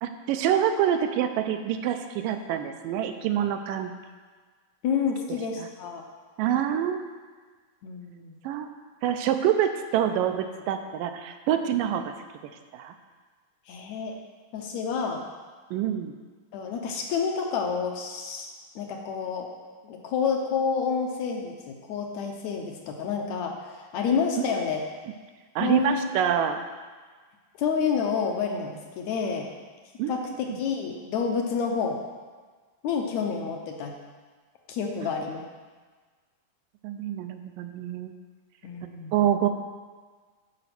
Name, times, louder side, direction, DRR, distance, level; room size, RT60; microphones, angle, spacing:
voice 1, 0.0-3.9 5.6-5.7 6.4-7.1 8.4-8.7 9.0-12.1 12.4-12.9 15.7-16.2 24.4-24.5 25.6-26.6 30.0-30.1 30.5-30.6 36.8-38.1 39.1-39.5, right 10 dB, 80° right, 7 dB, 2.3 m, -26 dB
voice 2, 4.8-6.0 7.8-8.3 13.7-14.2 14.5-15.2 16.5-18.5 18.7-19.5 19.9-24.8 25.6-26.2 27.5-29.5 30.1-32.0 32.8-33.9 34.7-35.4 38.6-39.1, left 6 dB, 70° left, 2 dB, 1.8 m, -29 dB
13.0 x 5.2 x 6.0 m, 1.5 s
omnidirectional pair, 4.0 m